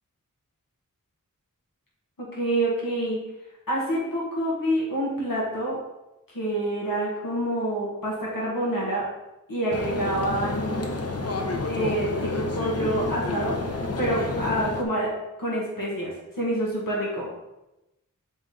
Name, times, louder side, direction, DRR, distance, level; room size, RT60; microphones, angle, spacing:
voice 1, 2.2-3.2 3.7-5.8 6.3-9.1 9.5-10.9 11.7-15.1 15.4-17.3, right 1 dB, 80° left, -5 dB, 1.7 m, -27 dB
sound 1, 9.7-14.8, left 2 dB, 45° left, 0.8 m, -29 dB
7.0 x 3.9 x 3.8 m, 0.95 s
wide cardioid pair, 45°, 33 cm